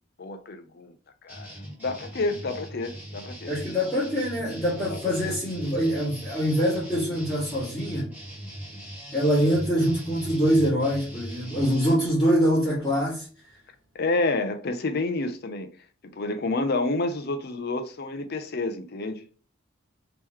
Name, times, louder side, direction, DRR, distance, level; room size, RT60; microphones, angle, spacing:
voice 1, 0.2-0.9 1.2-1.5 1.8-3.6 4.9-5.4 13.9-15.7 16.0-19.2, left 2 dB, 50° left, 0.5 m, -29 dB
sound 1, 1.3-12.0, equal, 10° right, 1.6 m, -40 dB
voice 2, 3.5-8.1 9.1-13.3, equal, 15° left, 1.5 m, -24 dB
3.7 x 2.9 x 3.0 m
head